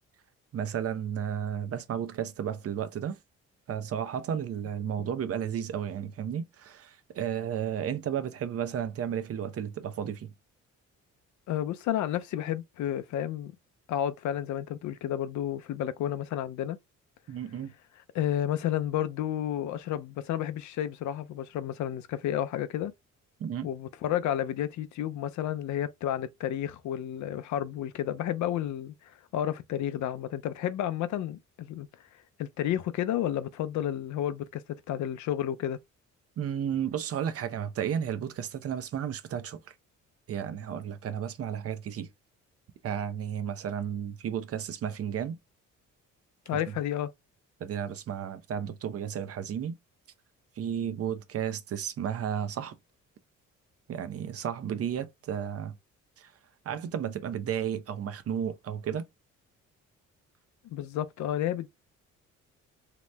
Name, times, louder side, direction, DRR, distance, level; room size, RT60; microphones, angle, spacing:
voice 1, 0.5-3.2 3.7-10.3 17.3-17.7 23.4-23.7 36.4-39.6 40.3-42.1 42.8-45.4 46.7-46.8 47.6-49.8 50.6-52.8 53.9-55.7 56.2-56.3 56.7-59.1, right 8 dB, 50° right, 0.6 m, -33 dB
voice 2, 11.5-13.5 13.9-16.8 18.1-22.9 23.6-28.9 29.3-31.9 32.4-34.6 34.9-35.8 46.5-47.1 60.6-61.7, left 11 dB, 70° left, 0.5 m, -31 dB
2.9 x 2.0 x 3.2 m
cardioid pair, 90°, 30 cm